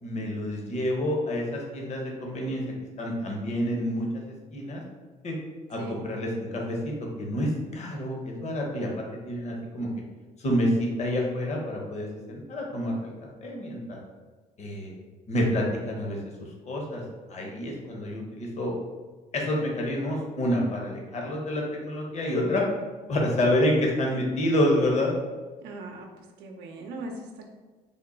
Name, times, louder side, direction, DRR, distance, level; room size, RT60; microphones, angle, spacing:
voice 1, 0.0-2.6 3.0-4.8 5.2-5.3 5.7-9.9 10.4-13.1 13.4-14.0 14.6-14.9 15.3-16.2 16.6-17.0 17.3-18.7 19.3-22.6 23.1-25.1, left 1 dB, 40° left, -1 dB, 0.9 m, -28 dB
voice 2, 25.6-27.5, right 2 dB, 85° right, 1 dB, 0.5 m, -40 dB
3.6 x 2.2 x 3.8 m, 1.4 s
cardioid pair, 110°, 17 cm